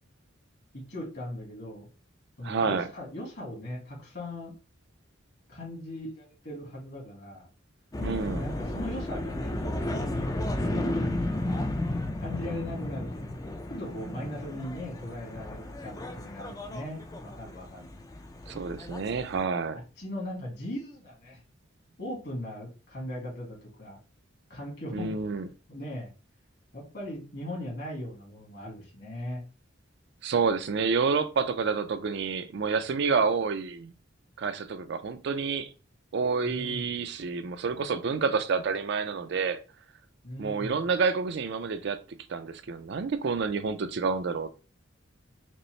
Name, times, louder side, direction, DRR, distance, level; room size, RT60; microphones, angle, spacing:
voice 1, 0.7-1.9 2.4-4.5 5.5-7.5 8.4-10.2 10.6-11.1 11.3-11.7 12.2-13.3 13.7-18.0 19.7-21.4 22.0-24.0 24.5-25.2 25.7-26.1 26.7-29.4 36.4-36.9 40.2-40.8, left 1 dB, 55° left, 1.9 m, -39 dB
voice 2, 2.4-2.9 8.0-8.4 18.5-19.8 24.9-25.5 30.2-33.9 34.4-35.7 36.1-39.6 40.4-42.0 42.3-44.5, right 5 dB, 60° right, 0.4 m, -28 dB
sound 1, 7.9-19.4, left 1 dB, 20° left, 0.4 m, -33 dB
5.2 x 2.0 x 3.1 m
head